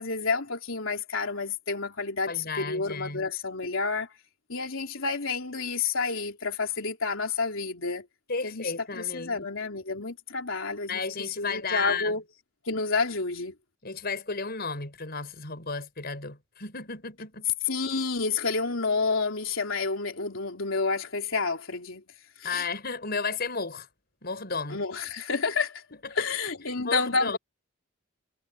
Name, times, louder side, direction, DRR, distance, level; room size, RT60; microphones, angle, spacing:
voice 1, 0.0-4.1 4.5-8.1 8.4-12.2 12.6-13.5 17.6-22.0 22.4-22.7 24.7-25.8 26.1-27.4, left 4 dB, 90° left, 3.3 m, -29 dB
voice 2, 2.3-3.3 8.3-9.5 10.9-12.1 13.8-17.5 22.4-23.9 24.2-24.8 26.1-26.2 26.8-27.4, left 4 dB, 50° left, 5.6 m, -33 dB
head